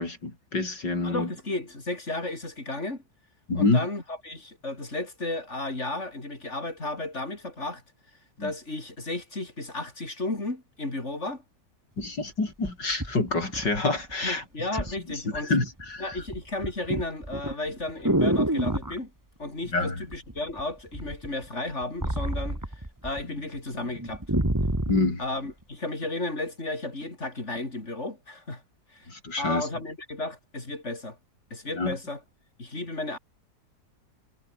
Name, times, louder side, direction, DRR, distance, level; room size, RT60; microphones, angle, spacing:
voice 1, 0.0-1.3 3.5-3.9 8.4-8.5 12.0-14.4 15.5-16.2 19.7-20.0 24.9-25.2 29.1-29.6 31.8-32.0, left 3 dB, 80° left, 6.3 m, -27 dB
voice 2, 1.0-3.0 3.6-7.8 8.4-11.4 14.2-15.5 16.0-19.1 19.4-22.6 23.0-24.2 25.2-28.6 28.9-29.1 29.4-31.2 31.5-32.2 32.6-33.2, left 2 dB, 40° left, 5.2 m, -33 dB
sound 1, 12.0-12.1 12.6-14.1 14.8-15.0 15.3-15.8 16.1-19.0 20.1-20.6 20.9-23.2 23.5-23.6 24.0-25.1 25.7-25.8, right 1 dB, 10° right, 3.0 m, -28 dB
omnidirectional pair, 1.9 m